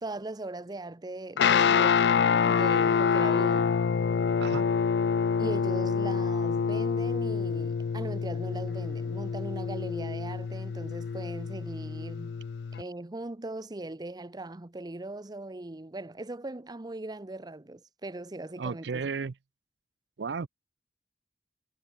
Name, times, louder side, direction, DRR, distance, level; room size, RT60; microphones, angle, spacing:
voice 1, 0.0-3.7 5.4-12.4 12.8-19.1, right 2 dB, 25° right, 0.8 m, -39 dB
Guitar, 1.4-12.8, left 6 dB, 75° left, 0.4 m, -26 dB
voice 2, 4.4-4.7 18.6-19.3 20.2-20.5, right 5 dB, 75° right, 0.5 m, -33 dB
head